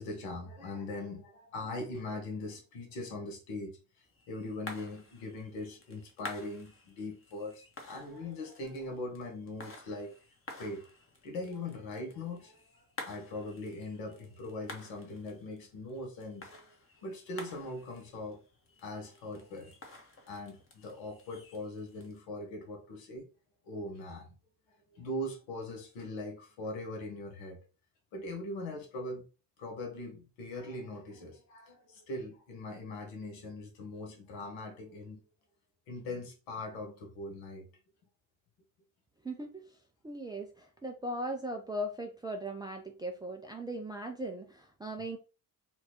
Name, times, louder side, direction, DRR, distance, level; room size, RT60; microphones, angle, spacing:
voice 1, 0.0-3.8 4.3-10.2 10.6-10.9 11.2-16.7 17.0-18.4 18.8-19.7 20.2-23.3 23.6-24.3 24.9-27.6 28.1-29.3 29.6-35.2 35.9-37.7, left 2 dB, 70° left, 1.1 m, -41 dB
sound 1, 4.0-22.2, left 2 dB, 25° left, 1.0 m, -51 dB
voice 2, 39.2-39.6 40.0-45.2, right 1 dB, 10° right, 0.4 m, -38 dB
4.3 x 2.3 x 2.8 m
figure-of-eight pair, 40°, 49 cm